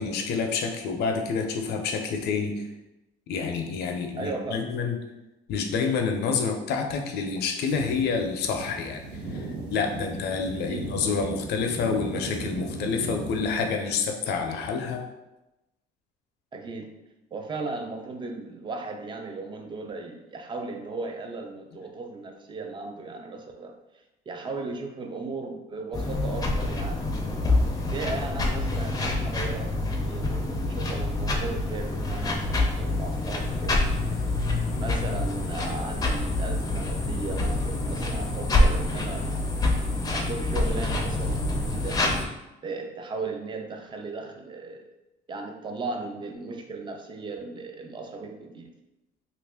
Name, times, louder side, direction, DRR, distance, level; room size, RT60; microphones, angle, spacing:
voice 1, 0.0-2.7 3.3-5.0 5.5-9.0 9.3-15.0, left 5 dB, 75° left, 4 dB, 0.5 m, -28 dB
voice 2, 4.2-4.7 10.7-11.0 16.5-16.9 17.3-23.7 24.3-27.1 27.9-33.8 34.8-39.3 40.1-42.0 42.6-44.8 45.3-48.7, right 3 dB, 30° right, 4 dB, 0.5 m, -36 dB
sound 1, 7.7-13.7, right 2 dB, 85° right, 0.9 m, -37 dB
sound 2, 25.9-42.2, left 2 dB, 20° left, 0.5 m, -26 dB
2.9 x 2.5 x 3.4 m, 0.98 s
cardioid pair, 110°, 17 cm